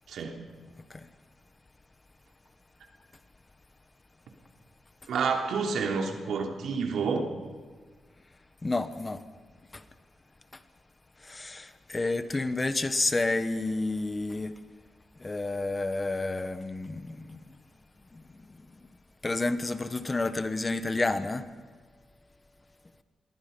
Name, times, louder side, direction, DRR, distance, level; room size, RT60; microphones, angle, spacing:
voice 1, 0.1-0.4 5.1-7.3, right 5 dB, 85° right, 3.1 m, -29 dB
voice 2, 8.6-9.2 9.7-9.8 10.5-10.6 11.2-14.5 15.2-17.4 18.1-18.9 19.2-21.5, left 2 dB, 25° left, 1.3 m, -30 dB
26.0 x 22.0 x 5.5 m
cardioid pair, 110°, 0 cm